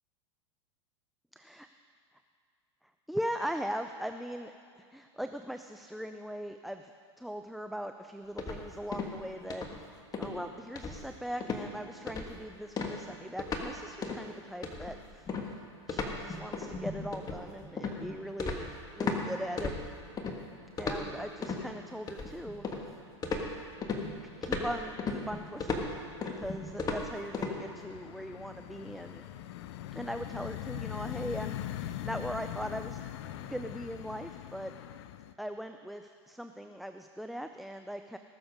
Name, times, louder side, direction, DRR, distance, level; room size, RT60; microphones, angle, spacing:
voice 1, 1.3-1.7 3.1-6.9 7.2-15.2 15.9-19.7 20.8-22.6 24.4-25.9 26.2-29.2 30.0-33.0 33.4-34.7 35.4-38.2, equal, ahead, 7 dB, 0.4 m, -40 dB
sound 1, 8.4-9.2 9.5-9.8 10.1-10.4 10.8-11.2 11.4-11.7 12.1-12.4 12.8-13.7 14.0-14.2 14.6-19.2 19.6-20.4 20.8-21.6 22.1-22.9 23.2-27.5, left 4 dB, 25° left, 1.5 m, -35 dB
sound 2, 22.2-22.8 23.1-23.8 24.2-35.3, left 12 dB, 65° left, 0.6 m, -42 dB
19.0 x 7.0 x 5.2 m, 2.4 s
hypercardioid pair, 110°, 15 cm